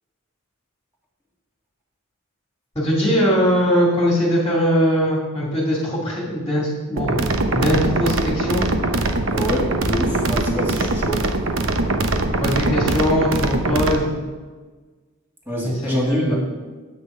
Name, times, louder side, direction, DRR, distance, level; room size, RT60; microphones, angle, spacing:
voice 1, 2.8-7.2 7.5-8.6 12.4-14.1 15.6-16.3, equal, 15° left, -4 dB, 2.4 m, -20 dB
sound 1, 7.0-14.0, right 2 dB, 60° right, 0.9 m, -22 dB
voice 2, 9.2-11.2 12.6-12.8 15.5-16.3, equal, 10° right, -4 dB, 2.4 m, -25 dB
9.7 x 8.7 x 5.5 m, 1.3 s
head